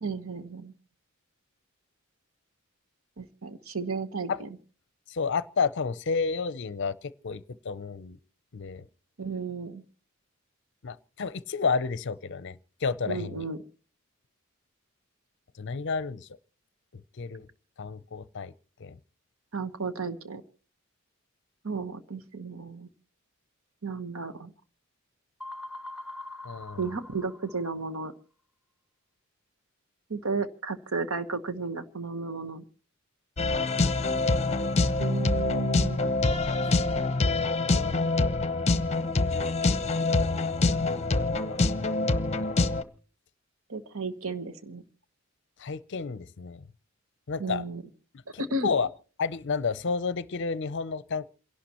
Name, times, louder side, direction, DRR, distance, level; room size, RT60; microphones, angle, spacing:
voice 1, 0.0-0.7 3.2-4.5 9.2-9.8 13.1-13.6 19.5-20.4 21.6-22.9 23.8-24.5 26.8-28.1 30.1-32.6 35.0-36.1 43.7-44.8 47.4-47.8 48.4-48.7, right 4 dB, 75° right, 1.2 m, -33 dB
voice 2, 5.1-8.2 8.5-8.9 10.8-13.4 15.6-16.3 16.9-17.5 17.8-18.5 18.8-19.0 26.4-26.9 36.8-38.1 40.2-41.6 42.0-42.6 45.6-46.6 47.3-47.6 48.6-48.9 49.2-51.3, left 5 dB, 60° left, 0.6 m, -31 dB
sound 1, 25.4-28.0, left 2 dB, ahead, 1.6 m, -43 dB
sound 2, 33.4-42.8, left 3 dB, 30° left, 0.9 m, -25 dB
28.0 x 11.5 x 3.0 m
head